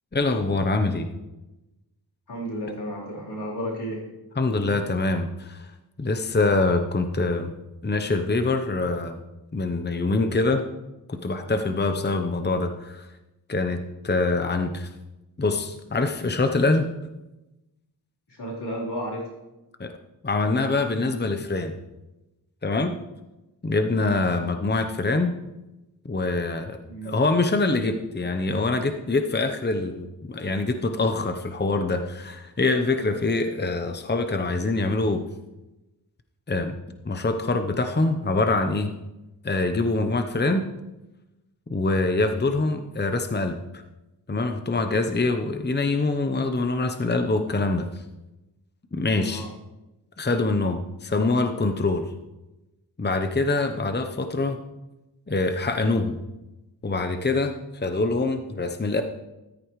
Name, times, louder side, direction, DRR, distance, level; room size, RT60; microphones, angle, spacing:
voice 1, 0.1-1.1 4.4-5.7 6.0-7.5 7.8-9.2 9.5-10.6 11.1-13.1 13.5-14.9 15.4-16.9 19.8-19.9 20.2-21.7 22.6-22.9 23.6-25.3 26.0-26.8 27.0-35.2 36.5-36.8 37.0-38.9 39.4-40.6 41.7-43.6 44.3-47.9 48.9-49.5 50.2-52.0 53.0-54.6 55.3-56.2 56.8-59.0, left 3 dB, 25° left, 7 dB, 0.9 m, -24 dB
voice 2, 2.3-4.0 18.3-19.3 26.9-27.2 49.2-49.5, equal, 85° left, -5 dB, 4.1 m, -32 dB
14.0 x 13.5 x 3.2 m, 1.0 s
wide cardioid pair, 65°, 39 cm